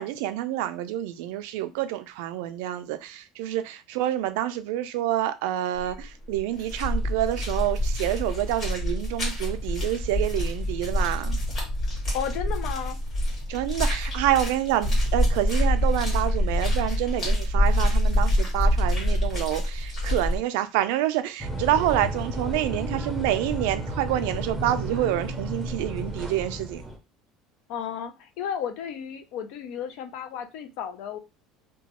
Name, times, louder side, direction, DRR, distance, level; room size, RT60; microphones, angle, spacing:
voice 1, 0.0-11.4 13.5-26.8, right 13 dB, 85° right, 0.3 m, -27 dB
sound 1, 5.8-6.1 6.4-20.4, equal, 30° left, 1.7 m, -26 dB
voice 2, 12.1-13.0 27.7-31.2, left 8 dB, 65° left, 0.5 m, -33 dB
sound 2, 21.4-27.0, right 1 dB, ahead, 0.7 m, -32 dB
2.9 x 2.2 x 2.9 m
cardioid pair, 145°, 0 cm